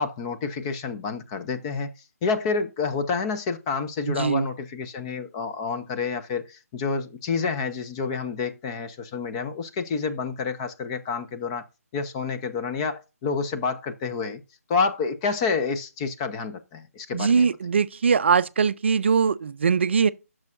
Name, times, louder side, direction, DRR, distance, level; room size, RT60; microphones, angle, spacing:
voice 1, 0.0-1.9 2.2-11.6 11.9-14.4 14.7-17.5, left 5 dB, 20° left, 0.7 m, -28 dB
voice 2, 4.1-4.5 17.1-20.1, right 6 dB, 50° right, 0.4 m, -21 dB
10.5 x 6.2 x 2.5 m
figure-of-eight pair, 150°, 8 cm